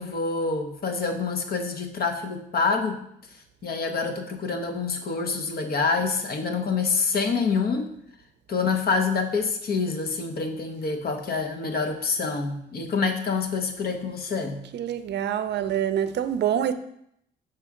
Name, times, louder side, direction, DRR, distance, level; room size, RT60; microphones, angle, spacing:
voice 1, 0.0-3.0 3.6-7.9 8.5-14.6, left 4 dB, 50° left, 5 dB, 1.0 m, -26 dB
voice 2, 14.7-16.7, right 9 dB, 60° right, 11 dB, 0.6 m, -26 dB
6.1 x 3.1 x 5.8 m, 0.73 s
cardioid pair, 90°, 20 cm